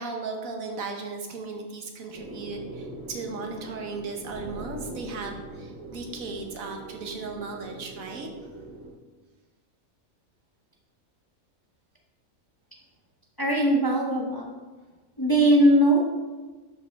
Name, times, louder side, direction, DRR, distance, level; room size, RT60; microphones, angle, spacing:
voice 1, 0.0-8.7, right 4 dB, 75° right, 3 dB, 1.4 m, -36 dB
sound 1, 2.1-8.9, right 2 dB, 15° right, 1.6 m, -41 dB
voice 2, 13.4-14.5 15.2-16.1, right 1 dB, 20° left, -1 dB, 0.7 m, -20 dB
11.5 x 5.1 x 3.4 m, 1.3 s
omnidirectional pair, 1.5 m